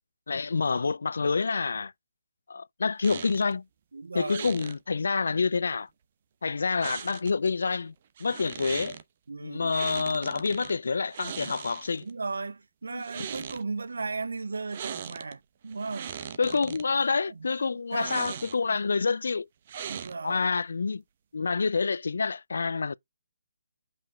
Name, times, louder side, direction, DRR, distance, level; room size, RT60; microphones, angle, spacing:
voice 1, 0.3-1.9 2.5-3.6 4.1-5.9 6.4-7.9 8.2-9.0 9.4-12.0 12.9-13.0 16.4-19.5 20.2-21.0 21.3-22.9, left 4 dB, 80° left, 0.4 m, -27 dB
sound 1, 3.0-3.5 4.3-4.8 6.8-7.5 8.2-9.0 9.7-10.7 11.1-12.1 12.9-13.6 14.7-15.3 15.7-16.8 17.9-18.8 19.7-20.4, right 8 dB, 35° right, 0.8 m, -39 dB
voice 2, 3.9-4.5 9.3-9.8 12.0-16.2 17.3-18.4 19.9-20.5, right 4 dB, 90° right, 0.6 m, -36 dB
5.8 x 4.9 x 4.2 m
hypercardioid pair, 165°, 0 cm